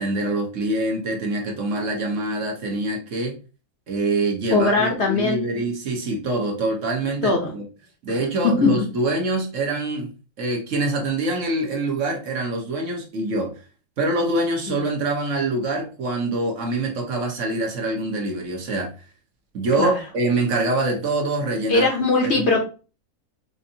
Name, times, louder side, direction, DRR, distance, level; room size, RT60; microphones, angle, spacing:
voice 1, 0.0-3.4 3.9-7.6 8.0-10.1 10.4-13.5 14.0-18.9 19.5-21.9, right 2 dB, 60° right, 1.2 m, -25 dB
voice 2, 4.5-5.4 7.2-7.5 8.6-8.7 14.7-14.8 19.8-20.0 21.7-22.6, left 3 dB, 55° left, 1.0 m, -20 dB
4.4 x 2.7 x 2.7 m
omnidirectional pair, 1.5 m